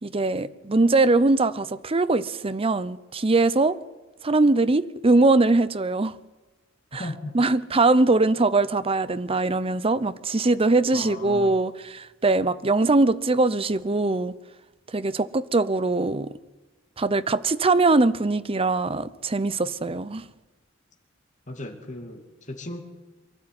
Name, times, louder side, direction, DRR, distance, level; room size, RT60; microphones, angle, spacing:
voice 1, 0.0-3.8 4.2-6.1 6.9-7.1 7.3-14.3 14.9-16.3 17.0-20.3, right 3 dB, 30° right, 0.7 m, -22 dB
voice 2, 7.0-7.4 10.9-11.6 21.5-22.8, left 1 dB, 40° left, 2.6 m, -36 dB
24.0 x 12.5 x 9.6 m
head